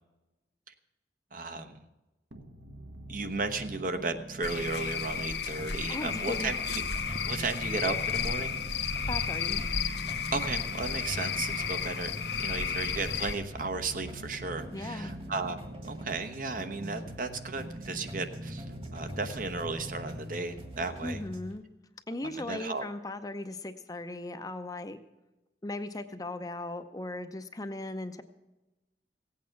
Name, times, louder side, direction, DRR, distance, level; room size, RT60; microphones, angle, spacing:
voice 1, 1.3-1.7 3.1-8.6 10.3-12.1 12.4-18.6 18.9-21.2 22.2-22.9, right 3 dB, 50° right, 8 dB, 1.0 m, -35 dB
sound 1, 2.3-20.2, right 1 dB, 75° right, 1.4 m, -45 dB
Cricket / Frog, 4.4-13.3, left 7 dB, 70° left, 1.0 m, -33 dB
sound 2, 5.6-21.6, equal, 30° right, 1.6 m, -44 dB
voice 2, 5.9-6.5 9.1-9.6 14.7-15.1 21.0-21.6 22.1-25.0 25.6-28.2, left 2 dB, 20° left, 8 dB, 0.7 m, -37 dB
16.5 x 8.5 x 5.9 m, 1.0 s
head